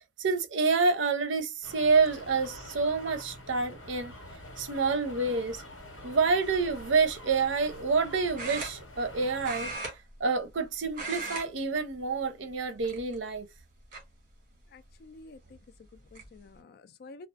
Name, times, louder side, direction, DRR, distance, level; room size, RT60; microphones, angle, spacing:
voice 1, 0.2-4.1 4.6-5.6 6.0-9.7 10.2-13.5, right 4 dB, 70° right, 0.6 m, -28 dB
sound 1, 1.6-9.8, left 1 dB, 80° left, 1.3 m, -46 dB
sound 2, 6.4-6.7 8.4-9.1 9.4-10.6 10.9-11.5 11.8-12.0 12.8-13.4 13.9-14.0 15.5-15.6 15.9-16.3, right 3 dB, 45° right, 1.3 m, -38 dB
voice 2, 14.7-17.3, left 3 dB, 55° left, 0.3 m, -51 dB
2.4 x 2.3 x 2.4 m
head